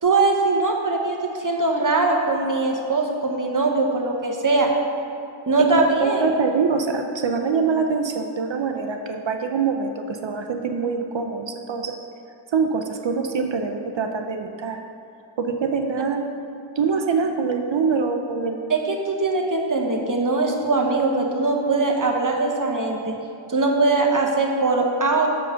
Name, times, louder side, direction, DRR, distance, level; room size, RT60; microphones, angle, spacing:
voice 1, 0.0-4.7 5.5-6.3 18.7-23.1 23.5-25.3, right 3 dB, 40° right, 1 dB, 0.9 m, -21 dB
voice 2, 5.7-11.9 12.5-14.8 15.4-16.2 16.8-18.6, right 5 dB, 60° right, 4 dB, 0.6 m, -24 dB
6.6 x 4.6 x 6.2 m, 2.6 s
wide cardioid pair, 70°, 50 cm